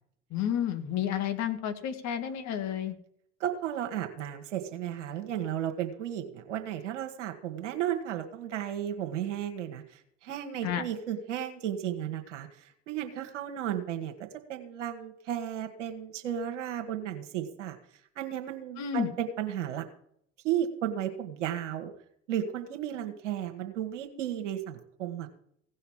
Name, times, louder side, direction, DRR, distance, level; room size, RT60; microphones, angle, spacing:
voice 1, 0.3-2.9 10.6-10.8 18.8-19.1, left 9 dB, 50° left, 8 dB, 1.9 m, -31 dB
voice 2, 3.4-14.1 14.5-17.8 18.1-19.8 20.4-21.9 22.3-25.3, right 10 dB, 75° right, 5 dB, 1.5 m, -34 dB
16.5 x 5.7 x 8.5 m, 0.67 s
hypercardioid pair, 70°, 36 cm